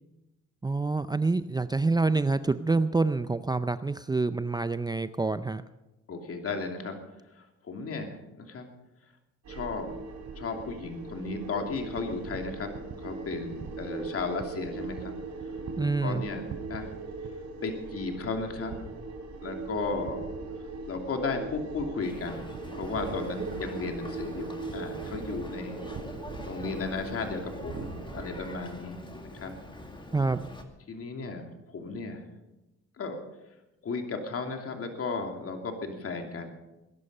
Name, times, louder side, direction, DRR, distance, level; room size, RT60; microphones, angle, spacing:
voice 1, 0.6-5.6 15.8-16.2 30.1-30.5, right 3 dB, 15° right, 12 dB, 0.5 m, -27 dB
voice 2, 6.1-7.0 7.3-8.7 9.5-9.9 10.4-12.7 13.0-15.1 15.8-16.9 17.6-18.8 19.4-20.3 20.9-25.8 26.4-29.0 29.3-29.5 30.9-32.2 33.0-33.2 33.8-36.5, left 4 dB, 50° left, 4 dB, 2.9 m, -35 dB
sound 1, 9.4-28.6, right 4 dB, 65° right, 3.5 m, -39 dB
Boat Water vehicle, 22.0-30.6, left 1 dB, 15° left, 2.3 m, -44 dB
20.0 x 11.0 x 5.5 m, 0.99 s
cardioid pair, 90°, 30 cm